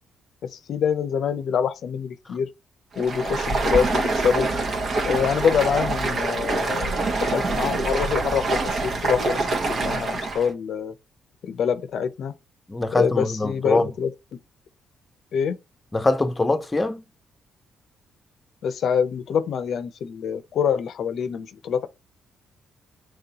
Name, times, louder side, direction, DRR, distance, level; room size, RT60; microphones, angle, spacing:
voice 1, 0.4-2.5 3.0-4.5 5.0-10.9 11.4-12.3 12.9-14.1 15.3-15.6 18.6-21.9, left 7 dB, 65° left, 0.5 m, -25 dB
Stream, 2.9-10.5, right 3 dB, 50° right, 0.9 m, -25 dB
voice 2, 12.7-13.9 15.9-17.0, left 2 dB, 20° left, 0.7 m, -23 dB
3.8 x 3.1 x 2.9 m
cardioid pair, 90°, 0 cm